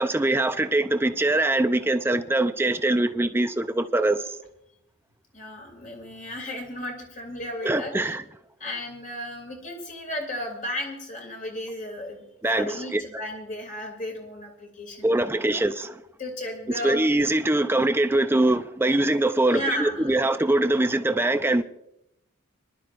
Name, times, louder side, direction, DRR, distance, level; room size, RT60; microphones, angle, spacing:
voice 1, 0.0-4.4 7.6-8.2 12.4-13.0 15.0-16.0 16.8-21.6, right 2 dB, 10° right, 0.5 m, -23 dB
voice 2, 5.3-8.1 8.6-12.2 12.5-15.2 15.5-15.6 16.2-17.0 19.5-20.1, left 1 dB, 35° left, 2.7 m, -34 dB
24.5 x 12.0 x 2.5 m
head